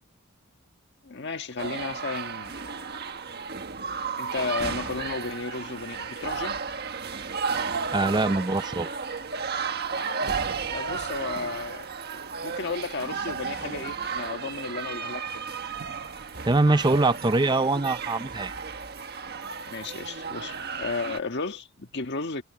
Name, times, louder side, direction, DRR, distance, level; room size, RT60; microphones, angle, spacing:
voice 1, 1.0-2.9 4.2-6.6 10.7-11.8 12.4-15.5 19.6-22.4, left 4 dB, 55° left, 1.6 m, -33 dB
sound 1, 1.6-21.2, right 5 dB, 50° right, 1.5 m, -33 dB
voice 2, 7.9-8.9 16.5-18.5, right 2 dB, 20° right, 0.5 m, -23 dB
head